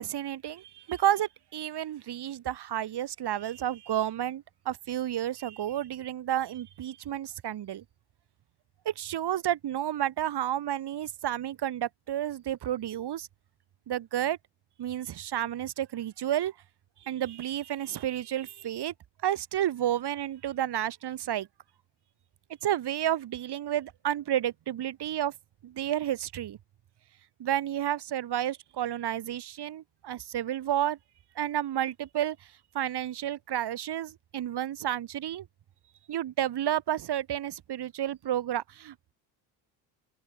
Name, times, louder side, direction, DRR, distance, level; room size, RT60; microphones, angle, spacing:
voice 1, 0.0-7.8 8.8-13.3 13.9-14.4 14.8-16.5 17.0-18.9 19.2-21.5 22.6-25.3 25.6-26.6 27.4-31.0 31.3-32.4 32.7-35.5 36.1-39.1, right 11 dB, 55° right, 5.2 m, -31 dB
open air
supercardioid pair, 85°, 48 cm